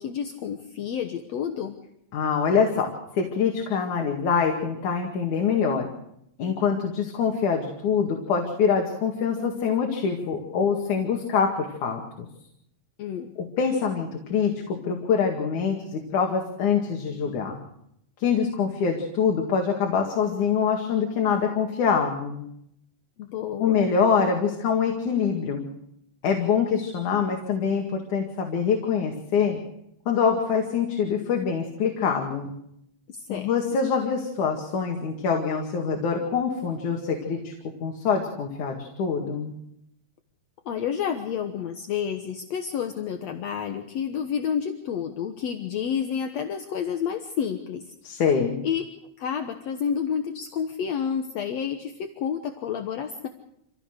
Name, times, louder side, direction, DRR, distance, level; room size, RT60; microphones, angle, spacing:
voice 1, 0.0-1.8 13.0-13.3 23.2-23.9 33.1-33.5 40.7-47.9 48.6-48.8 49.2-53.3, left 8 dB, 65° left, 5 dB, 2.3 m, -30 dB
voice 2, 2.1-2.9 3.1-5.9 6.4-12.0 13.6-17.6 18.2-22.4 23.6-25.7 26.2-29.6 30.1-32.5 33.3-37.5 37.8-39.5 48.0-48.6, left 6 dB, 85° left, 1 dB, 3.6 m, -24 dB
27.0 x 16.5 x 6.6 m, 0.77 s
omnidirectional pair, 3.4 m